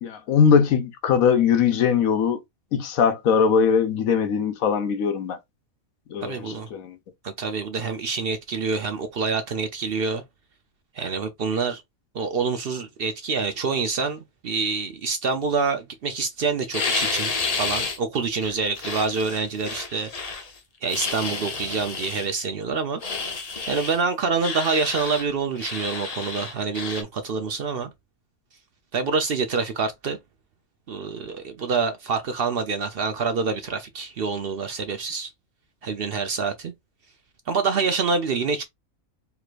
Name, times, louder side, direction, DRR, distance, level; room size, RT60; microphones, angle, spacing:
voice 1, 0.0-2.4 2.7-5.4 6.1-7.0, left 6 dB, 85° left, 1.2 m, -21 dB
voice 2, 6.2-6.7 7.2-10.2 10.9-11.8 12.1-20.1 20.8-23.0 23.7-27.9 28.9-30.2 30.9-35.3 35.8-36.7 37.5-38.6, right 5 dB, 60° right, 0.6 m, -26 dB
sound 1, 16.7-18.0 18.4-20.5 20.9-22.3 23.0-24.0 24.4-25.3 25.6-27.0, left 4 dB, 35° left, 0.7 m, -30 dB
4.6 x 3.0 x 2.4 m
omnidirectional pair, 1.4 m